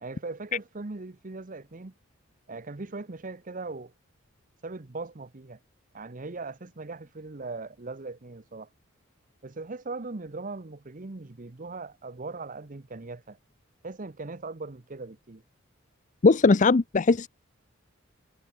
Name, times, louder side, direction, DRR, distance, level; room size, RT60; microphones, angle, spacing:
voice 1, 0.0-1.9 2.5-3.9 4.6-5.6 5.9-8.7 9.4-13.4 13.8-15.4, right 3 dB, 40° right, 0.9 m, -39 dB
voice 2, 16.2-17.3, left 3 dB, 35° left, 0.5 m, -19 dB
head